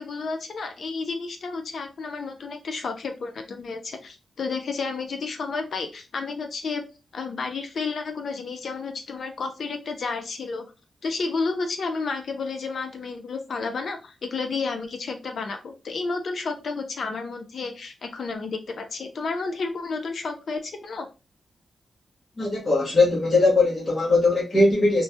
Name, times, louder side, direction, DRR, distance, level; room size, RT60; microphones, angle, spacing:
voice 1, 0.0-6.8 7.1-10.6 11.0-21.1, left 4 dB, 65° left, 0.5 m, -31 dB
voice 2, 22.4-25.0, left 2 dB, 45° left, 1.1 m, -20 dB
3.2 x 2.2 x 2.7 m
cardioid pair, 80°, 0 cm